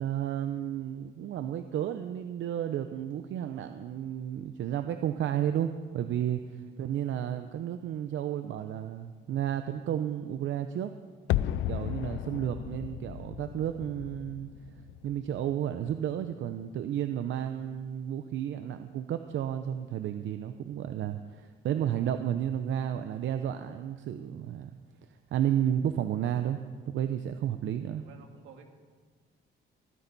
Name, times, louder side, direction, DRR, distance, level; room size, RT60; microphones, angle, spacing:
voice 1, 0.0-10.9 11.7-14.5 15.0-24.8 25.1-26.6 26.9-28.0, right 10 dB, 75° right, 8 dB, 0.7 m, -32 dB
sound 1, 11.3-16.2 16.5-16.6, left 13 dB, 85° left, 0.5 m, -35 dB
voice 2, 28.0-28.7, right 6 dB, 90° right, 3 dB, 2.1 m, -53 dB
27.0 x 10.0 x 4.1 m, 1.5 s
cardioid pair, 90°, 20 cm